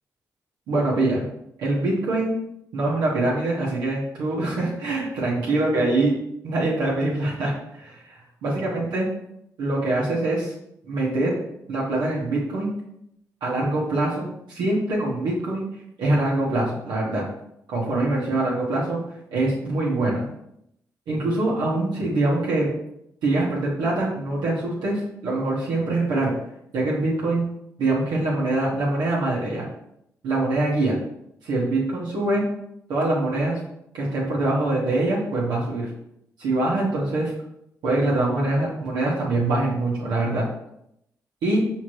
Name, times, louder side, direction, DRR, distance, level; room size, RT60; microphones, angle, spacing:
voice 1, 0.7-1.2 1.6-2.3 2.7-6.1 6.4-8.0 8.4-9.1 9.6-10.5 10.9-11.3 11.7-12.7 13.4-15.6 16.0-17.2 17.7-19.0 19.3-20.2 21.1-22.7 23.2-26.3 26.7-27.5 27.8-29.7 30.2-31.0 31.4-32.4 32.9-33.6 33.9-35.9 36.4-37.3 37.8-40.4 41.4-41.6, right 2 dB, 85° right, -6 dB, 1.1 m, -24 dB
4.7 x 3.5 x 3.0 m, 0.78 s
supercardioid pair, 50°, 7 cm